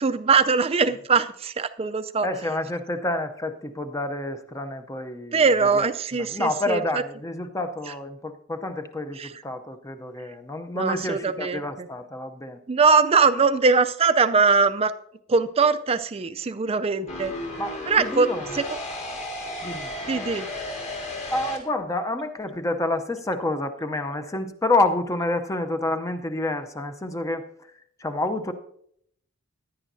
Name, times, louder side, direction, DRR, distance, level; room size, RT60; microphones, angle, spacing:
voice 1, 0.0-2.3 5.3-6.8 9.2-9.3 10.7-11.9 12.7-14.9 15.3-17.3 17.9-18.3 18.5-18.6 20.1-20.5, right 4 dB, 30° right, 11 dB, 0.4 m, -21 dB
voice 2, 2.2-5.9 6.2-12.6 17.6-18.6 19.6-19.9 21.3-27.4 28.0-28.5, left 2 dB, 15° left, 8 dB, 0.6 m, -28 dB
sound 1, 17.1-21.6, left 1 dB, 35° left, 2.0 m, -34 dB
16.0 x 10.0 x 2.7 m, 0.69 s
head